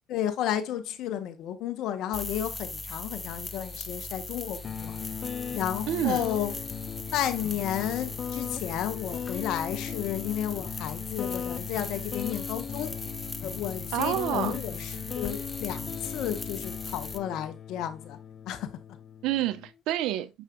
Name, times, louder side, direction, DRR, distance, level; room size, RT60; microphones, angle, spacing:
voice 1, 0.1-5.0 5.5-6.5 7.1-12.9 13.4-18.2 18.5-18.7, left 10 dB, 70° left, 1.2 m, -32 dB
sound 1, 2.1-17.2, left 2 dB, 20° left, 0.9 m, -39 dB
sound 2, 4.6-19.7, left 8 dB, 50° left, 0.5 m, -38 dB
voice 2, 5.9-6.2 13.9-14.6 19.2-20.3, right 13 dB, 75° right, 0.7 m, -28 dB
7.2 x 5.6 x 2.5 m
supercardioid pair, 70°, 0 cm